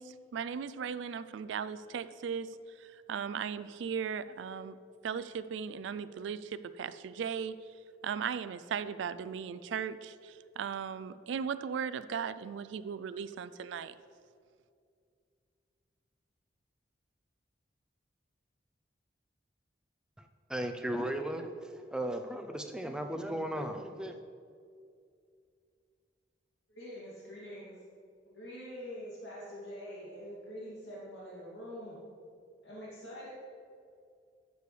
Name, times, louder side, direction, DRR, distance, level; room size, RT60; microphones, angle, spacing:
voice 1, 0.0-2.5 2.8-4.8 5.0-7.5 8.0-13.9, right 7 dB, 90° right, 14 dB, 0.3 m, -37 dB
voice 2, 20.2-24.2, right 1 dB, 5° right, 5 dB, 0.5 m, -36 dB
voice 3, 26.7-27.8 28.3-32.0 32.6-33.3, equal, 85° left, -8 dB, 2.3 m, -45 dB
11.0 x 6.9 x 3.2 m, 2.3 s
head